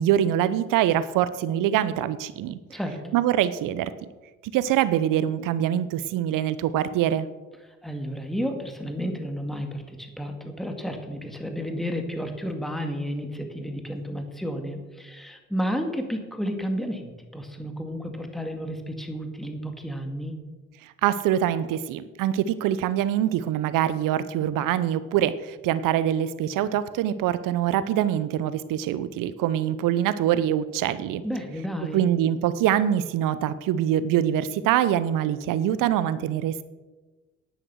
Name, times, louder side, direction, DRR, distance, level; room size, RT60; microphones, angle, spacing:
voice 1, 0.0-2.6 3.1-3.9 4.5-7.3 20.8-31.2 31.9-36.6, right 11 dB, 65° right, 15 dB, 0.8 m, -24 dB
voice 2, 2.7-3.1 7.8-20.4 31.2-32.1, equal, ahead, 5 dB, 2.2 m, -32 dB
10.5 x 9.8 x 6.3 m, 1.2 s
hypercardioid pair, 55°, 35 cm